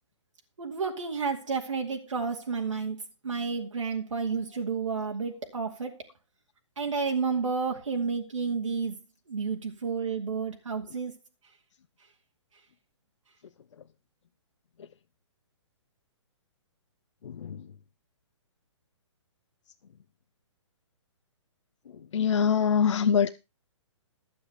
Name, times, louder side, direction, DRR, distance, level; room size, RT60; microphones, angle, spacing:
voice 1, 0.6-6.0 6.8-9.0 9.3-11.1, right 5 dB, 85° right, 2.4 m, -31 dB
voice 2, 17.2-17.6 22.1-23.3, left 7 dB, 70° left, 0.8 m, -24 dB
12.0 x 8.5 x 5.0 m
hypercardioid pair, 140°, 16 cm